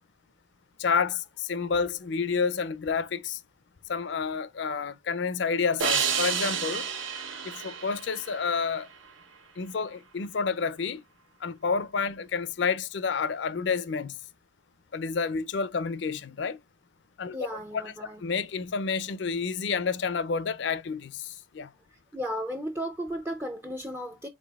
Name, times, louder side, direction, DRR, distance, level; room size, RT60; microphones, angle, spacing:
voice 1, 0.8-3.4 3.9-6.9 7.4-8.9 9.6-11.0 11.4-14.1 14.9-16.6 17.2-17.4 17.7-17.9 18.2-21.7, left 5 dB, 65° left, 0.4 m, -29 dB
sound 1, 5.8-9.1, right 7 dB, 90° right, 1.2 m, -30 dB
voice 2, 17.3-18.2 22.1-24.3, equal, 10° right, 0.4 m, -34 dB
5.0 x 4.0 x 2.3 m
head